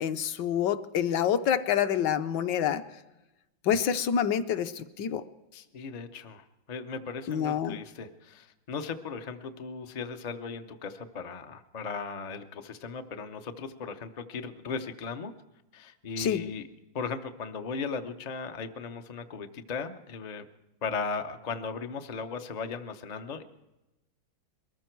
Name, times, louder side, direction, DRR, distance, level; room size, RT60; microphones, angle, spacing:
voice 1, 0.0-2.8 3.6-5.2 7.3-7.8 16.2-16.4, left 8 dB, 70° left, 10 dB, 1.3 m, -27 dB
voice 2, 5.5-15.3 15.7-16.6 16.9-20.5 20.8-23.4, left 5 dB, 85° left, 6 dB, 0.3 m, -37 dB
22.5 x 14.0 x 4.6 m, 0.98 s
omnidirectional pair, 2.1 m